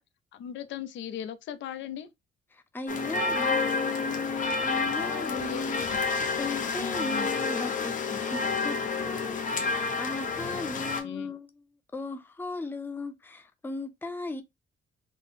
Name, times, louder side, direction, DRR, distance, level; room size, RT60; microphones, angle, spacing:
voice 1, 0.3-2.1 4.9-6.0 6.6-7.3 10.5-11.3, left 9 dB, 80° left, 0.6 m, -39 dB
voice 2, 2.5-11.5 11.9-14.4, left 3 dB, 10° left, 0.5 m, -37 dB
sound 1, 2.9-11.0, left 4 dB, 45° left, 0.9 m, -29 dB
3.7 x 2.0 x 4.1 m
cardioid pair, 135°, 19 cm